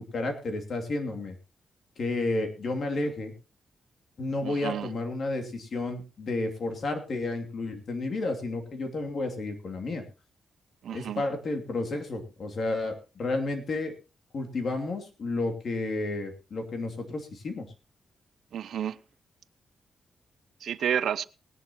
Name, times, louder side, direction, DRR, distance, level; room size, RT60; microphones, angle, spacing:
voice 1, 0.1-1.3 2.0-3.3 4.2-10.0 10.9-13.9 14.3-17.7, left 2 dB, 50° left, 2.7 m, -31 dB
voice 2, 4.4-4.9 10.8-11.2 18.5-19.0 20.6-21.3, right 9 dB, 75° right, 0.6 m, -30 dB
19.5 x 11.0 x 3.0 m
cardioid pair, 125°, 0 cm